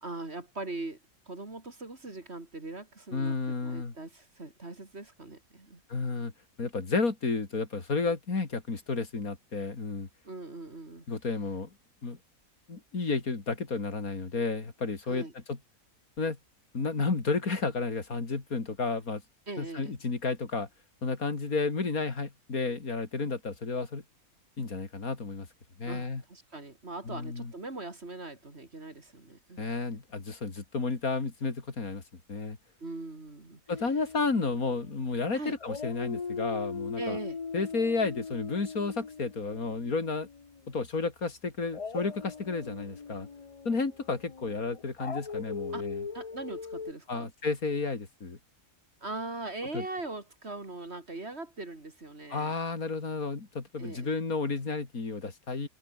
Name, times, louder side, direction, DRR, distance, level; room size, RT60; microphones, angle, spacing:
voice 1, 0.0-1.0 1.3-5.8 10.2-11.1 15.1-15.3 19.5-19.9 25.9-29.6 32.8-33.6 35.3-35.6 37.0-37.4 45.7-45.9 46.1-47.3 49.0-52.6 53.8-54.2, right 2 dB, 40° right, 3.5 m, -40 dB
voice 2, 3.1-3.9 5.9-6.3 6.6-10.1 11.1-11.7 12.0-12.2 12.7-15.6 16.2-16.4 16.7-19.2 19.6-20.7 21.0-24.0 24.6-25.5 25.8-26.2 27.1-27.5 29.6-32.0 32.3-32.6 33.7-37.2 37.5-40.3 40.7-43.3 43.7-46.0 47.1-48.4 49.7-49.8 52.3-55.7, left 4 dB, 65° left, 3.4 m, -32 dB
Dog, 33.7-35.2 35.6-40.7 41.7-46.9, left 5 dB, 30° left, 0.6 m, -40 dB
open air
omnidirectional pair, 1.7 m